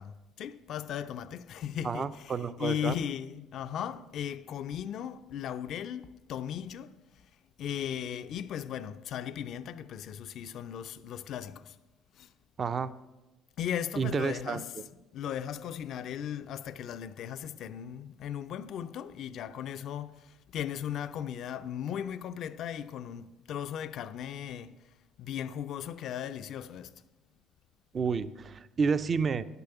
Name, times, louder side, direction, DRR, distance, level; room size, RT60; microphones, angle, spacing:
voice 1, 0.0-7.0 7.6-11.8 12.1-12.3 13.6-14.7 15.1-24.8 25.2-26.9, left 9 dB, 60° left, 0.4 m, -37 dB
voice 2, 1.8-3.0 12.6-12.9 14.0-14.6 27.9-29.5, right 5 dB, 40° right, 0.6 m, -30 dB
11.5 x 6.8 x 7.0 m
hypercardioid pair, 65°, 0 cm